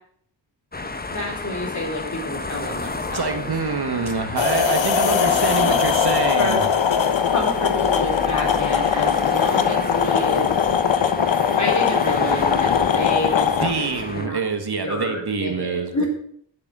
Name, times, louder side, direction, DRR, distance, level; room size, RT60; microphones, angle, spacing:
sound 1, 0.7-14.3, left 3 dB, 20° left, 0.9 m, -31 dB
voice 1, 1.1-3.5 5.7-5.8 6.4-6.6 7.3-10.5 11.6-14.4 14.8-16.1, left 1 dB, 40° left, -1 dB, 4.4 m, -29 dB
voice 2, 3.1-6.6 13.6-16.0, right 4 dB, 60° right, 6 dB, 1.7 m, -26 dB
sound 2, 4.4-13.7, left 7 dB, 80° left, 1.0 m, -20 dB
12.0 x 8.3 x 6.2 m, 0.64 s
wide cardioid pair, 110°, 45 cm